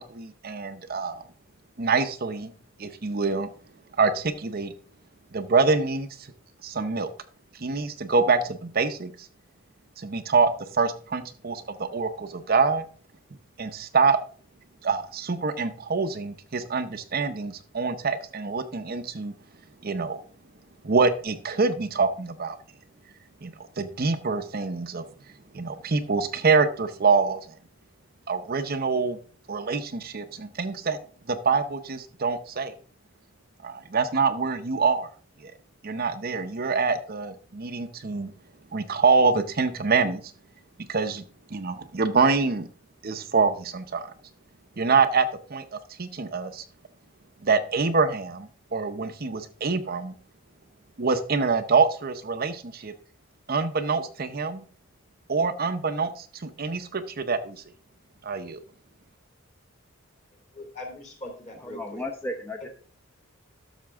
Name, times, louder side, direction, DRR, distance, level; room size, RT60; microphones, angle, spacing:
voice 1, 0.1-1.2 1.8-2.5 2.8-3.5 4.0-4.7 5.3-6.3 6.6-7.1 7.6-9.3 10.0-12.8 13.6-14.2 14.8-19.3 19.8-20.2 20.8-22.6 23.4-25.0 25.5-27.6 28.3-29.2 29.5-31.0 31.3-32.7 33.6-35.1 35.4-35.5 35.8-38.3 38.7-40.2 40.9-41.2 41.5-42.7 43.0-44.1 44.8-45.6 46.0-46.6 47.4-50.1 51.0-52.9 53.5-54.6 55.3-57.6 58.2-58.6, right 4 dB, 45° right, 8 dB, 0.7 m, -25 dB
voice 2, 60.5-62.0, left 2 dB, 35° left, 2 dB, 3.0 m, -40 dB
voice 3, 61.6-62.7, left 1 dB, 10° left, 2 dB, 0.9 m, -34 dB
12.5 x 6.6 x 3.5 m, 0.42 s
head